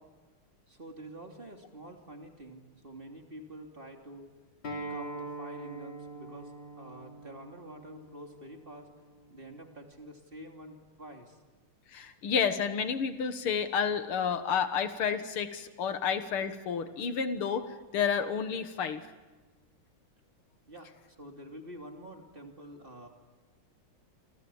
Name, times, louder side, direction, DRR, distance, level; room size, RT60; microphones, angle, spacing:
voice 1, 0.7-4.3 4.9-8.9 9.3-11.4 20.7-23.1, right 1 dB, 25° right, 2 dB, 3.0 m, -47 dB
Acoustic guitar, 4.6-9.8, right 2 dB, 60° left, 5.0 m, -43 dB
voice 2, 11.9-17.7 17.9-19.0, left 7 dB, 90° left, 9 dB, 2.4 m, -30 dB
28.0 x 27.5 x 7.2 m, 1.3 s
omnidirectional pair, 2.3 m